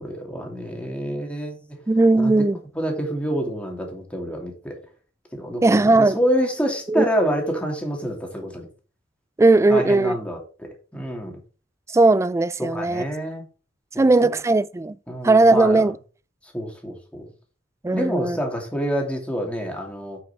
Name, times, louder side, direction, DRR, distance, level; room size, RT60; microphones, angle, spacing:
voice 1, 0.0-1.8 2.2-2.5 2.8-4.8 5.3-8.7 9.7-11.4 12.6-13.4 13.9-14.1 15.1-15.8 16.5-17.3 17.9-20.2, equal, 5° left, 2.7 m, -27 dB
voice 2, 1.9-2.6 5.6-6.2 6.9-7.1 9.4-10.2 11.9-13.0 14.0-15.0 15.2-16.0 17.8-18.4, right 2 dB, 15° right, 0.3 m, -17 dB
9.5 x 6.1 x 4.3 m
head